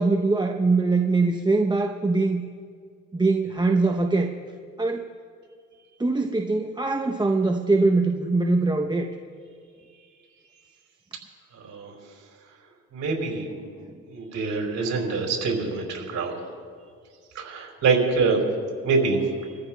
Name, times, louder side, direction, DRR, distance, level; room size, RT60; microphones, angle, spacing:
voice 1, 0.0-2.4 3.1-4.3 4.8-5.1 6.0-9.1 13.8-13.9, right 3 dB, 15° right, 3 dB, 0.7 m, -22 dB
voice 2, 11.6-11.9 12.9-13.5 14.1-16.4 17.3-18.4 18.8-19.5, right 4 dB, 65° right, -1 dB, 4.7 m, -25 dB
27.5 x 14.5 x 2.2 m, 2.1 s
cardioid pair, 90°, 30 cm